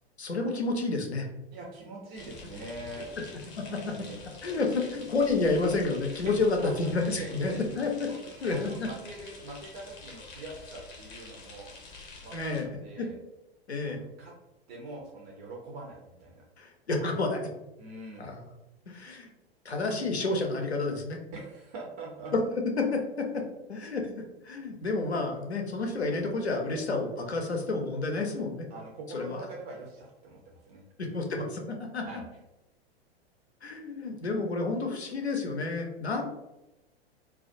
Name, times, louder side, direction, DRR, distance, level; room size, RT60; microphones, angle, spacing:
voice 1, 0.2-1.3 3.2-3.3 3.6-3.9 4.4-8.1 8.4-8.9 12.3-12.7 13.0-13.1 13.7-14.0 16.6-17.5 18.2-18.4 18.9-19.3 19.6-21.2 22.5-23.4 23.7-28.7 29.1-29.4 31.0-31.6 31.9-32.0 33.6-36.2, left 3 dB, 85° left, 3 dB, 0.5 m, -30 dB
voice 2, 1.5-3.1 3.6-4.2 6.2-6.4 6.6-7.6 8.1-11.7 12.0-13.1 13.8-14.3 14.7-16.4 17.8-18.3 21.3-22.3 28.7-30.8 32.0-32.2, right 2 dB, 35° right, -2 dB, 0.5 m, -43 dB
sound 1, 2.1-12.6, left 3 dB, 40° left, 0.7 m, -47 dB
2.3 x 2.1 x 2.5 m, 0.96 s
figure-of-eight pair, 95°, 32 cm